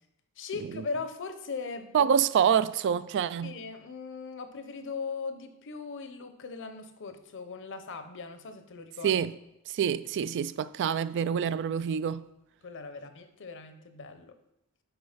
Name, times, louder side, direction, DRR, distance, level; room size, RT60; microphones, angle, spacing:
voice 1, 0.4-2.1 2.9-3.0 3.4-9.2 12.6-14.3, left 4 dB, 55° left, 0.7 m, -39 dB
voice 2, 1.9-3.5 9.0-9.3 9.7-12.3, right 8 dB, 55° right, 0.3 m, -26 dB
8.0 x 4.6 x 5.0 m
head